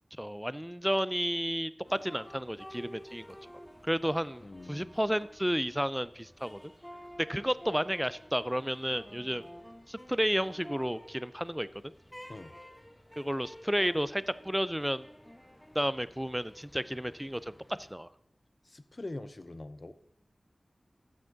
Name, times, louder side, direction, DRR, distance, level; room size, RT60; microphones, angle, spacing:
voice 1, 0.2-3.3 3.8-6.6 7.3-9.5 9.9-11.9 13.2-15.0 15.7-18.1, equal, 5° right, 17 dB, 0.4 m, -32 dB
sound 1, 1.8-17.9, equal, 10° left, 1.0 m, -52 dB
voice 2, 4.4-4.9 12.3-12.5 18.6-19.9, left 2 dB, 45° left, 12 dB, 0.6 m, -43 dB
14.5 x 6.1 x 3.9 m, 0.74 s
wide cardioid pair, 60°, 0 cm